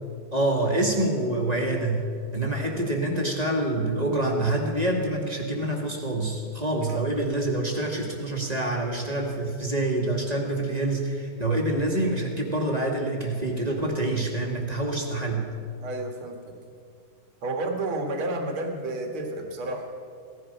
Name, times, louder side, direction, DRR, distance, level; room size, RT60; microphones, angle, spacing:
voice 1, 0.3-2.1 2.3-15.5, right 1 dB, 20° right, 0 dB, 1.9 m, -26 dB
voice 2, 15.8-16.5 17.4-19.9, right 2 dB, 80° right, 3 dB, 2.4 m, -31 dB
17.5 x 14.0 x 5.5 m, 2.2 s
omnidirectional pair, 2.3 m